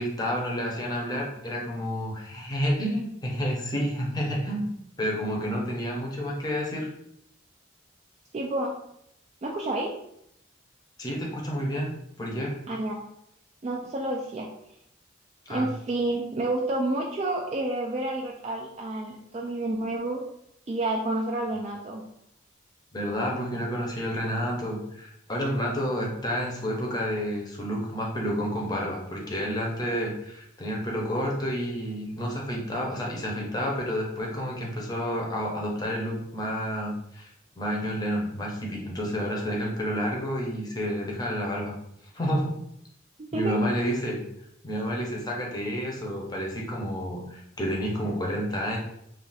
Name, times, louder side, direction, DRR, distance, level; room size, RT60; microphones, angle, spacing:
voice 1, 0.0-4.7 5.0-6.9 11.0-11.9 12.2-12.6 15.5-15.7 22.9-41.7 42.1-42.5 43.3-44.2 44.6-48.8, equal, 20° left, -2 dB, 0.6 m, -30 dB
voice 2, 8.3-8.7 9.4-9.9 12.7-12.9 13.6-14.5 15.5-20.2 20.7-22.0 43.3-43.6, right 2 dB, 35° right, -2 dB, 0.3 m, -29 dB
2.5 x 2.4 x 3.9 m, 0.74 s
head